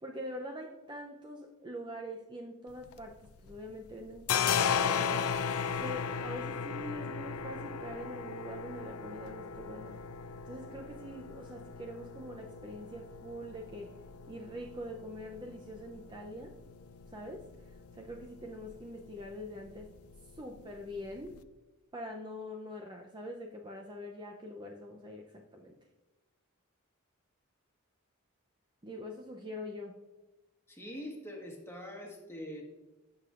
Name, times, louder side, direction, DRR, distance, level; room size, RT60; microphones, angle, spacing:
voice 1, 0.0-5.3 5.8-10.0 10.5-14.0 14.3-16.5 17.1-17.5 17.9-19.9 20.3-21.4 21.9-25.7 28.8-30.0, equal, 20° right, 1 dB, 0.6 m, -44 dB
sound 1, 2.7-3.6 3.9-21.4, left 7 dB, 85° left, 0.5 m, -37 dB
voice 2, 30.7-32.6, equal, 10° left, 0 dB, 1.4 m, -43 dB
15.5 x 6.8 x 2.5 m, 1.1 s
head